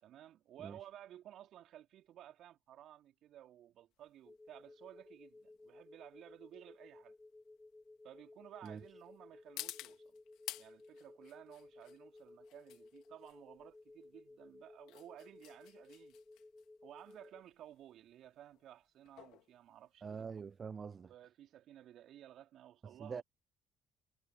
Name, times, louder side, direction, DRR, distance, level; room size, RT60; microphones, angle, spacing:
voice 1, 0.0-7.2 8.0-10.2 10.6-16.2 16.8-20.2 21.0-23.2, right 11 dB, 65° right, 3.9 m, -56 dB
sound 1, 3.9-20.6, left 16 dB, 70° left, 3.0 m, -54 dB
sound 2, 4.2-17.4, left 2 dB, 20° left, 4.2 m, -58 dB
voice 2, 20.0-21.1 22.8-23.2, right 6 dB, 40° right, 0.3 m, -45 dB
hypercardioid pair, 55°, 0 cm